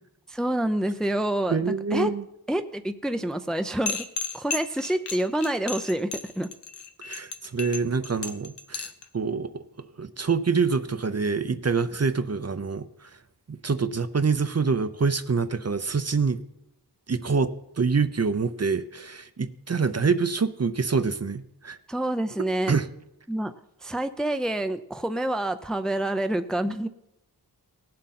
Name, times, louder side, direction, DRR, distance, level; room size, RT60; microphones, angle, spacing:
voice 1, 0.3-1.6 1.9-2.1 2.5-4.1 4.3-6.5 21.9-22.7 23.3-23.5 23.8-26.9, right 1 dB, ahead, 9 dB, 0.5 m, -27 dB
voice 2, 1.5-2.2 7.0-13.1 13.5-16.4 17.1-21.8 22.7-22.9, right 5 dB, 40° right, 11 dB, 0.7 m, -26 dB
sound 1, 3.9-9.0, left 5 dB, 85° left, 0.9 m, -34 dB
18.0 x 7.7 x 4.2 m, 0.85 s
wide cardioid pair, 60°, 40 cm